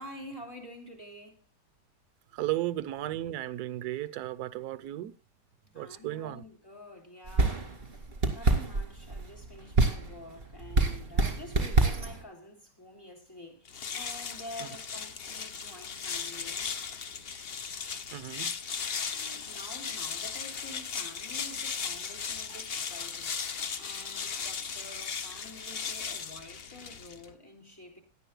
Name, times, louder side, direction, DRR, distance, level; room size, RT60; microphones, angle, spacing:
voice 1, 0.0-1.5 5.6-8.0 8.3-16.7 19.1-23.3 23.8-28.0, left 1 dB, 10° left, 3.0 m, -48 dB
voice 2, 2.3-5.1 5.7-6.4 14.6-14.7 18.1-18.5, right 14 dB, 60° right, 1.2 m, -34 dB
sound 1, 7.3-12.2, right 3 dB, 30° right, 2.4 m, -27 dB
sound 2, 13.6-27.3, left 6 dB, 50° left, 0.7 m, -37 dB
18.0 x 11.0 x 2.2 m
omnidirectional pair, 2.1 m